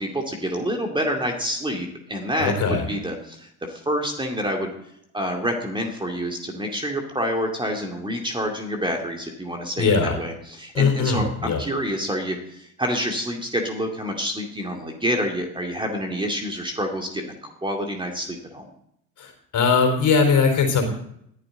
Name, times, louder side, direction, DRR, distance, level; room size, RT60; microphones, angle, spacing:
voice 1, 0.0-4.7 5.1-18.6, equal, 10° right, 2 dB, 2.5 m, -28 dB
voice 2, 2.4-2.8 9.8-10.2 10.8-11.6 19.2-20.9, left 5 dB, 40° left, 4 dB, 4.1 m, -20 dB
19.5 x 11.0 x 4.0 m, 0.72 s
figure-of-eight pair, 70°, 45 cm